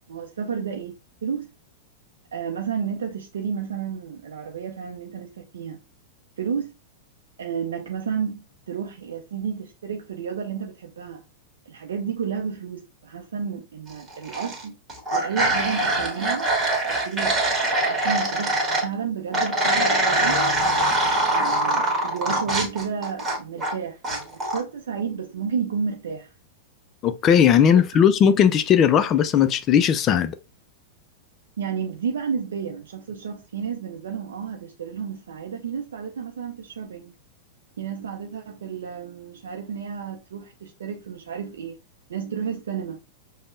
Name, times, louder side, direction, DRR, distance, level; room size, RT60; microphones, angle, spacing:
voice 1, 0.1-1.5 2.3-5.8 6.4-6.7 7.4-11.2 11.7-14.8 15.1-16.5 16.9-17.4 17.7-18.6 18.8-20.4 21.3-26.3 31.6-37.1 37.8-41.8 42.1-43.0, right 7 dB, 75° right, 0.4 m, -31 dB
sound 1, 14.1-14.6 14.9-18.9 19.3-23.7 24.0-24.6, right 1 dB, 20° right, 1.4 m, -23 dB
voice 2, 27.0-30.4, left 8 dB, 35° left, 0.3 m, -18 dB
5.1 x 2.0 x 2.5 m
hypercardioid pair, 100°, 0 cm